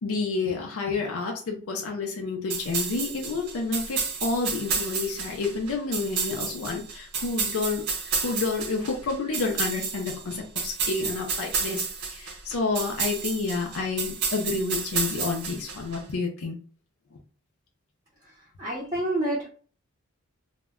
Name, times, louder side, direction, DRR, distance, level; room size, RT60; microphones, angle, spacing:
voice 1, 0.0-7.9 8.2-16.6, left 4 dB, 70° left, 0 dB, 0.4 m, -29 dB
sound 1, 2.5-16.0, right 5 dB, 80° right, 0.6 m, -31 dB
voice 2, 18.6-19.5, right 1 dB, 20° right, -6 dB, 0.6 m, -27 dB
2.1 x 2.1 x 3.5 m, 0.42 s
head